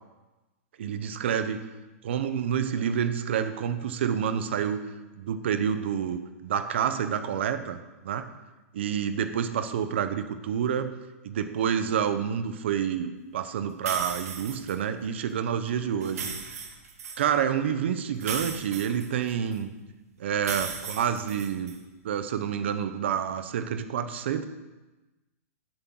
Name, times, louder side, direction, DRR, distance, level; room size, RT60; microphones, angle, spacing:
voice 1, 0.8-1.6 2.0-4.9 5.2-7.8 8.0-8.2 8.7-10.9 11.2-16.6 17.2-19.7 20.2-21.8 22.0-24.5, right 8 dB, 50° right, 11 dB, 0.8 m, -28 dB
sound 1, 13.9-14.7 16.0-17.2 18.2-19.6 20.4-21.8, right 5 dB, 85° right, 1.8 m, -36 dB
10.5 x 7.9 x 6.1 m, 1.1 s
hypercardioid pair, 180°, 8 cm